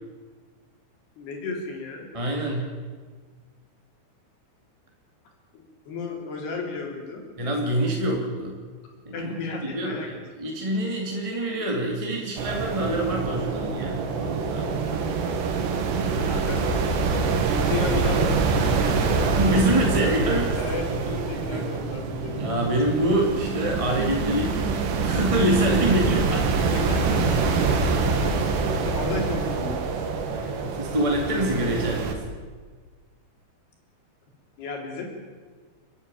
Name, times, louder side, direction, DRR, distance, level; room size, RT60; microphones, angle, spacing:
voice 1, 1.2-2.1 5.5-7.2 9.1-10.2 10.6-10.7 16.3-16.6 17.5-19.3 20.6-22.5 26.7-28.4 28.9-29.9 34.6-35.1, left 4 dB, 70° left, 1 dB, 5.4 m, -33 dB
voice 2, 2.1-2.6 7.4-8.6 9.0-9.3 9.6-14.8 19.4-20.6 21.5-21.6 22.4-26.5 28.6-28.8 30.3-32.2, right 1 dB, 10° right, -1 dB, 1.7 m, -26 dB
sound 1, 12.4-32.2, right 4 dB, 90° right, 4.1 m, -25 dB
30.0 x 10.5 x 9.0 m, 1.5 s
omnidirectional pair, 4.9 m